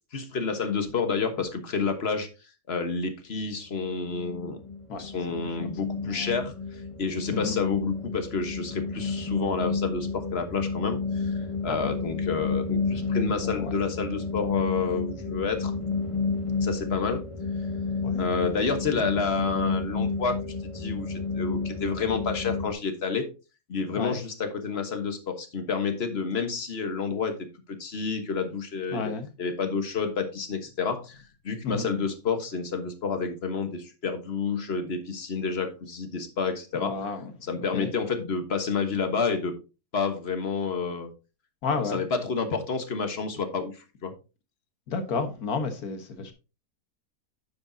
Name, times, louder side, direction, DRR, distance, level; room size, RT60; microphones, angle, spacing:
voice 1, 0.1-2.3 2.7-4.6 5.0-6.5 7.0-11.3 11.6-15.7 16.6-17.2 18.2-20.4 20.6-23.3 23.7-29.1 29.4-31.2 31.4-37.0 37.5-39.5 39.9-41.1 41.7-44.1, left 5 dB, 40° left, 1.4 m, -29 dB
sound 1, 3.7-22.7, left 4 dB, 25° left, 1.0 m, -31 dB
voice 2, 6.0-6.4 7.3-7.6 11.6-11.9 13.4-13.8 18.0-18.3 19.0-19.1 23.9-24.2 28.9-29.3 31.6-31.9 36.7-37.3 37.7-37.9 41.6-42.0 44.9-46.3, left 4 dB, 65° left, 1.7 m, -32 dB
9.6 x 7.3 x 2.7 m
omnidirectional pair, 1.7 m